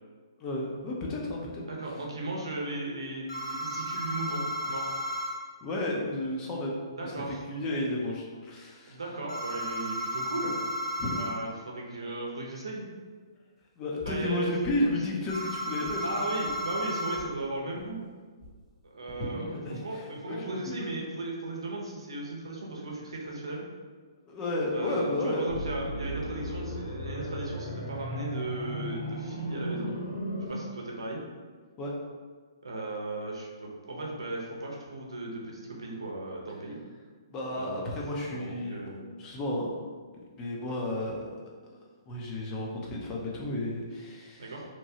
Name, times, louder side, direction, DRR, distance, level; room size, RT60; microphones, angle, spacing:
voice 1, 0.4-1.6 5.6-7.1 7.5-9.0 11.0-11.3 13.8-16.2 19.3-20.8 24.3-25.5 31.8-31.9 37.3-39.7 40.3-41.3 42.1-44.5, left 1 dB, 25° left, -2 dB, 0.5 m, -32 dB
voice 2, 1.7-4.9 7.0-7.4 8.9-10.6 11.1-12.9 14.0-14.5 14.8-15.0 16.0-18.0 18.8-23.7 24.7-29.9 30.5-31.2 32.6-36.8 37.5-37.9 38.3-39.1 44.4-44.7, right 2 dB, 80° right, -2 dB, 0.7 m, -36 dB
sound 1, 3.3-5.4 9.3-11.4 15.3-17.2, equal, 65° left, 0.8 m, -33 dB
sound 2, 14.0-14.3 14.6-14.9 15.2-16.0 16.4-16.6 17.1-17.3 17.8-17.9 18.4-18.6 19.1-19.3 19.8-20.2, equal, 15° right, 0.6 m, -48 dB
sound 3, 25.5-30.5, equal, 85° left, 1.1 m, -36 dB
2.9 x 2.2 x 2.7 m, 1.5 s
hypercardioid pair, 135°, 3 cm